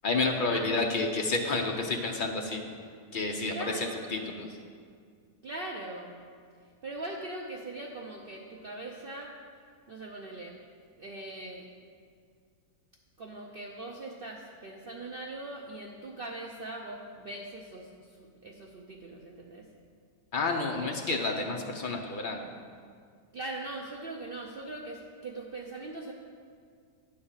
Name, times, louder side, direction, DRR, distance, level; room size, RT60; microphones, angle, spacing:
voice 1, 0.0-2.6 3.1-4.6 20.3-22.4, left 3 dB, 65° left, 2 dB, 0.5 m, -30 dB
voice 2, 3.5-4.2 5.4-6.2 6.8-9.3 9.9-10.6 11.0-11.7 13.2-19.7 23.3-26.1, right 2 dB, 60° right, 0 dB, 0.5 m, -41 dB
9.9 x 4.4 x 7.1 m, 2.1 s
omnidirectional pair, 1.7 m